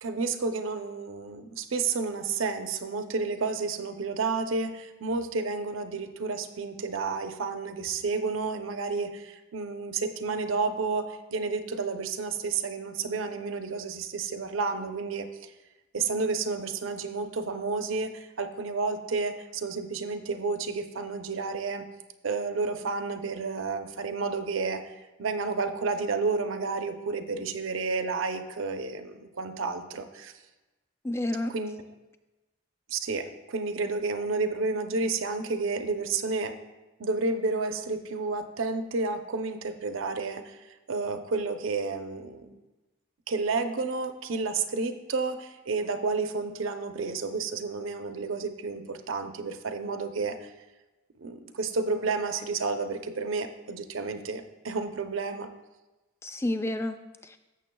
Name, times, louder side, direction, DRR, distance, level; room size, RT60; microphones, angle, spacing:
voice 1, 0.0-15.5 15.9-21.9 22.2-24.8 25.2-30.3 31.5-31.8 32.9-36.5 37.0-42.6 43.3-50.5 51.2-55.5, right 4 dB, 80° right, 8 dB, 0.6 m, -31 dB
voice 2, 31.0-31.5 56.2-57.4, left 1 dB, 15° left, 8 dB, 0.4 m, -30 dB
15.0 x 6.8 x 2.3 m, 1.1 s
head